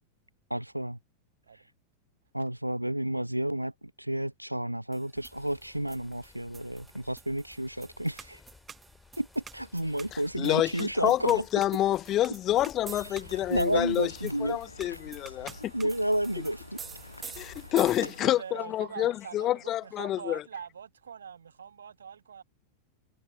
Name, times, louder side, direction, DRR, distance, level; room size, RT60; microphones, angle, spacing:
voice 1, 0.5-1.0 1.5-1.7 2.3-8.4 9.2-11.4 13.0-14.6 15.2-15.4 15.7-16.8, right 1 dB, 90° right, 0.5 m, -31 dB
sound 1, 4.9-18.4, right 6 dB, 20° right, 0.9 m, -49 dB
sound 2, 5.1-18.1, left 4 dB, 15° left, 2.9 m, -56 dB
voice 2, 10.4-14.1 14.4-15.7 17.4-20.4, left 13 dB, 30° left, 0.3 m, -28 dB
sound 3, 12.8-18.4, left 2 dB, 85° left, 1.3 m, -47 dB
voice 3, 18.0-22.4, right 7 dB, 70° right, 1.2 m, -43 dB
figure-of-eight pair, 90°, 0 cm